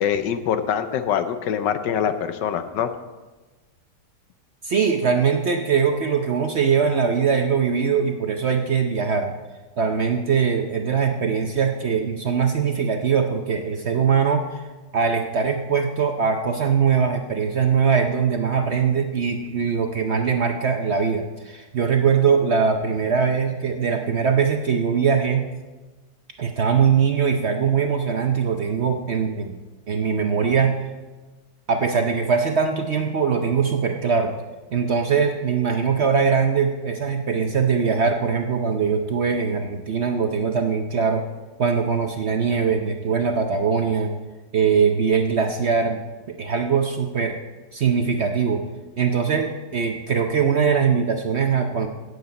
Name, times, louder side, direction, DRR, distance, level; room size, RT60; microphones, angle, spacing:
voice 1, 0.0-2.9, left 8 dB, 90° left, 10 dB, 1.4 m, -24 dB
voice 2, 4.6-9.3 9.8-14.6 14.9-25.5 26.4-29.6 29.9-30.8 31.7-34.3 34.7-41.2 41.6-44.1 44.5-46.0 46.3-47.4 47.7-48.6 49.0-51.9, right 6 dB, 55° right, 4 dB, 0.8 m, -21 dB
16.5 x 8.0 x 4.2 m, 1.2 s
omnidirectional pair, 1.9 m